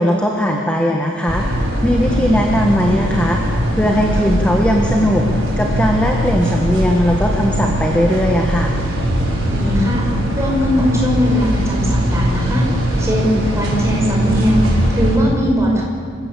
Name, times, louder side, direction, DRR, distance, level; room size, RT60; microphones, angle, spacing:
voice 1, 0.0-1.4 1.8-3.4 3.7-5.3 5.6-8.7, equal, 5° left, 0 dB, 1.5 m, -18 dB
sound 1, 1.3-15.2, equal, 65° right, 6.4 m, -20 dB
voice 2, 9.5-10.1 10.4-12.6 13.0-15.8, equal, 15° right, -2 dB, 5.5 m, -19 dB
26.5 x 15.5 x 8.4 m, 2.2 s
head